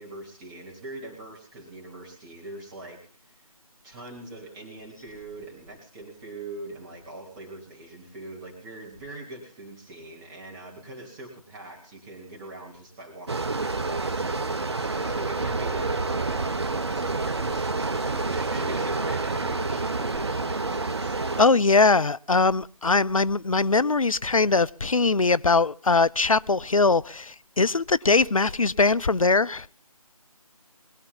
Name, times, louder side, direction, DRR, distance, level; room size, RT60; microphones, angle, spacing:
voice 1, 0.0-3.4 3.8-16.4 16.9-21.2, right 2 dB, 10° right, 3.3 m, -42 dB
sound 1, 13.3-21.5, right 3 dB, 45° right, 1.2 m, -28 dB
voice 2, 21.4-29.7, left 3 dB, 65° left, 0.7 m, -21 dB
21.0 x 11.0 x 5.5 m
figure-of-eight pair, 160°, 19 cm